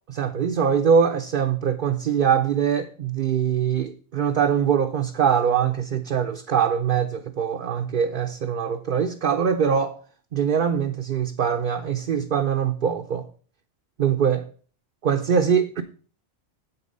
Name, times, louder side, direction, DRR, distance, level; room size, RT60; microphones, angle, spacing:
voice 1, 0.1-10.0 10.3-13.3 14.0-14.4 15.0-15.8, right 7 dB, 55° right, 0.7 m, -23 dB
8.3 x 6.7 x 5.3 m
omnidirectional pair, 1.2 m